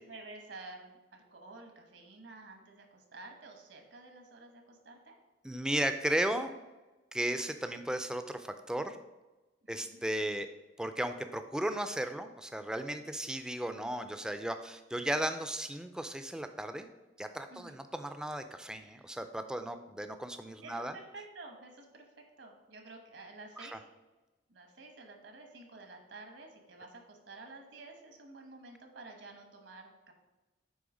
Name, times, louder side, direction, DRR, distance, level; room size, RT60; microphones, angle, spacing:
voice 1, 0.1-5.1 9.6-10.0 17.5-17.8 18.8-19.1 20.6-23.8 24.5-30.1, right 3 dB, 80° right, 4 dB, 1.2 m, -51 dB
voice 2, 5.4-6.5 7.1-9.0 9.7-10.5 10.8-16.9 17.2-20.9 23.6-23.8, right 1 dB, 5° right, 8 dB, 0.3 m, -35 dB
7.8 x 3.3 x 4.9 m, 1.1 s
head